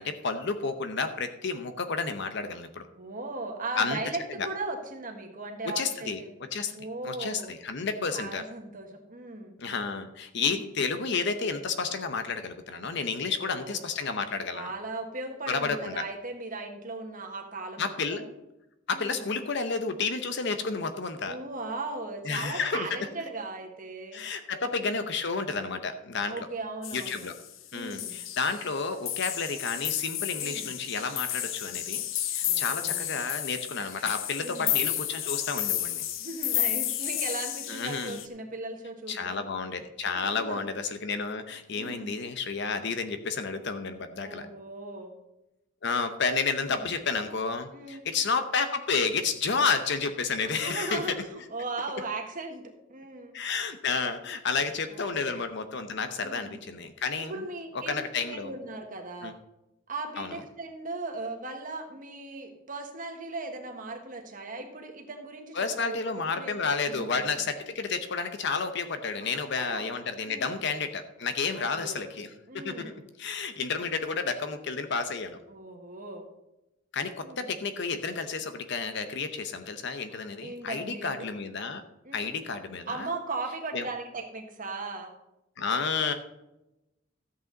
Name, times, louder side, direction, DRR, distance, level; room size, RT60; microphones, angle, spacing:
voice 1, 0.0-2.9 3.8-4.0 4.4-4.5 5.6-6.2 6.5-8.4 9.6-14.7 15.5-16.0 17.8-18.2 18.9-21.4 22.2-23.1 24.1-26.3 26.9-27.3 27.7-32.0 32.3-36.0 37.7-38.2 39.1-44.5 45.8-51.2 53.3-57.3 57.9-58.5 59.2-59.3 60.2-60.4 65.5-75.4 76.9-81.8 82.1-83.1 83.7-83.9 85.6-86.1, left 4 dB, 65° left, 9 dB, 0.9 m, -31 dB
voice 2, 3.0-6.3 6.7-7.5 8.1-9.5 10.4-10.6 13.2-13.8 14.5-18.3 18.9-19.2 21.2-24.2 24.6-25.0 26.3-27.3 27.7-28.2 30.4-30.7 32.4-33.1 34.4-34.8 36.2-39.4 40.1-40.6 41.7-42.2 44.2-45.1 46.6-46.9 47.7-48.1 50.4-53.3 54.9-55.4 56.2-56.6 57.3-58.0 58.3-59.3 59.9-66.6 66.8-67.3 69.2-69.9 70.3-70.5 71.5-72.1 72.5-73.0 75.5-76.3 77.2-77.5 80.4-81.3 82.0-82.3 82.9-85.1, right 2 dB, 45° right, 3 dB, 1.5 m, -38 dB
sound 1, 26.8-27.6 27.9-28.8 29.1-38.3, left 12 dB, 90° left, 0.7 m, -32 dB
13.5 x 8.5 x 4.0 m, 0.93 s
head